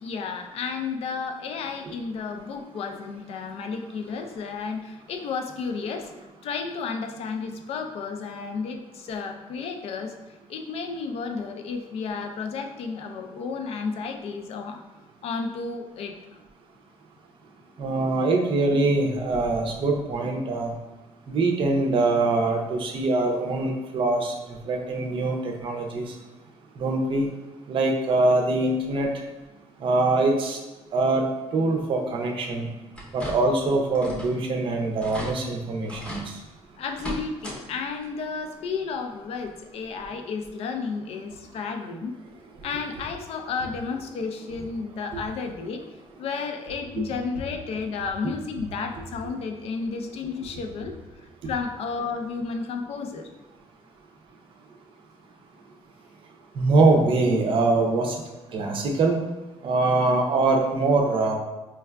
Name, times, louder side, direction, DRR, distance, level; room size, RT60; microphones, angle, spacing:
voice 1, 0.0-6.1 6.4-10.1 10.5-14.8 15.2-16.2 36.8-42.1 42.6-45.8 46.2-50.9 51.4-53.3, left 5 dB, 60° left, 5 dB, 0.4 m, -32 dB
voice 2, 17.8-20.7 21.3-24.3 24.7-26.1 26.8-27.3 27.7-29.1 29.8-30.6 30.9-32.7 33.1-36.3 45.1-45.2 56.6-58.2 58.5-59.2 59.6-61.4, right 3 dB, 50° right, 1 dB, 0.5 m, -23 dB
sound 1, 32.9-33.6 33.9-34.4 34.7-34.8 35.0-35.3 35.9-36.3 36.9-37.6 37.9-38.0 39.4-39.5 40.0-40.1, equal, 10° left, 0.7 m, -36 dB
4.5 x 2.3 x 2.2 m, 1.1 s
cardioid pair, 135°, 11 cm